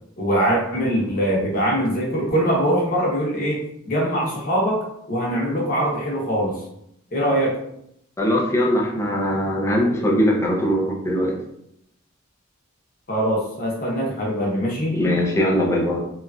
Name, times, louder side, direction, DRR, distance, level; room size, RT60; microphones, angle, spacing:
voice 1, 0.2-6.5 7.1-7.6 13.1-15.0, equal, 45° left, -3 dB, 0.9 m, -22 dB
voice 2, 8.2-11.4 14.9-16.0, equal, 15° left, -2 dB, 0.5 m, -21 dB
2.9 x 2.4 x 2.3 m, 0.75 s
head